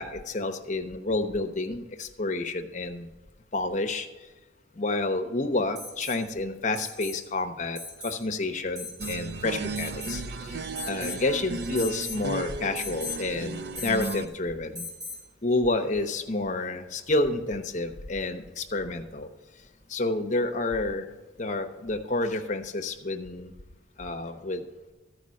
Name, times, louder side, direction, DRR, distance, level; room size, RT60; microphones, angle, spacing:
voice 1, 0.0-3.1 3.5-4.1 4.8-10.6 10.9-14.9 15.4-19.3 19.9-21.0 21.4-23.5 24.0-24.6, left 2 dB, 40° left, 5 dB, 0.8 m, -29 dB
Alarm, 5.7-6.2 6.7-7.2 7.7-8.2 8.7-9.2 9.7-10.3 10.7-11.2 11.7-12.2 12.7-13.2 13.7-14.2 14.7-15.2 17.0-17.1, left 3 dB, 20° right, 2.1 m, -38 dB
sound 1, 9.0-14.3, right 3 dB, 55° right, 0.5 m, -35 dB
13.0 x 5.0 x 6.3 m, 1.2 s
head